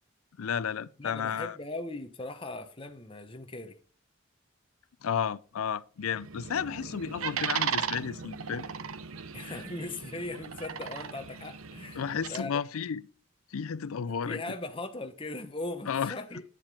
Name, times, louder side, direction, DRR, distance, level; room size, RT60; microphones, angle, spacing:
voice 1, 0.4-1.6 5.0-8.7 9.5-9.6 12.0-13.1 13.5-14.4 15.9-16.1, left 7 dB, 90° left, 0.5 m, -32 dB
voice 2, 1.0-3.8 9.3-12.0 12.3-12.6 14.2-16.4, left 2 dB, 25° left, 1.0 m, -39 dB
sound 1, 6.0-12.4, right 7 dB, 90° right, 0.8 m, -36 dB
9.4 x 7.3 x 4.9 m
head